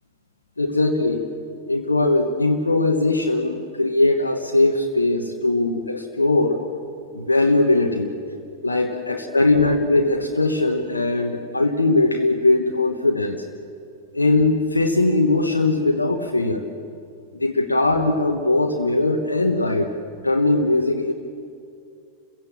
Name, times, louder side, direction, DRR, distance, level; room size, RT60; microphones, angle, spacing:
voice 1, 0.6-1.3 1.7-6.6 7.1-8.2 8.6-13.4 14.1-16.6 17.3-19.9 20.2-21.1, left 2 dB, 80° left, 3 dB, 1.2 m, -20 dB
29.0 x 16.5 x 7.4 m, 2.5 s
figure-of-eight pair, 90°, 0 cm